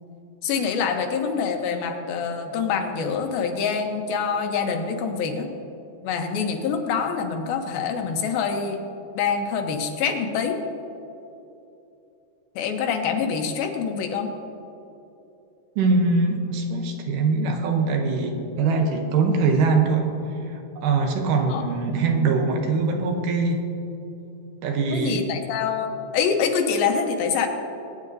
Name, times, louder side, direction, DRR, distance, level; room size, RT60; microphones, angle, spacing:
voice 1, 0.4-5.5 6.0-8.8 9.1-10.6 12.6-14.3 21.5-21.6 24.9-25.9 26.1-27.5, left 6 dB, 85° left, 4 dB, 2.8 m, -25 dB
voice 2, 15.8-20.1 20.5-23.7 24.6-25.2, right 4 dB, 75° right, 4 dB, 2.3 m, -22 dB
21.0 x 9.5 x 2.6 m, 2.9 s
omnidirectional pair, 4.1 m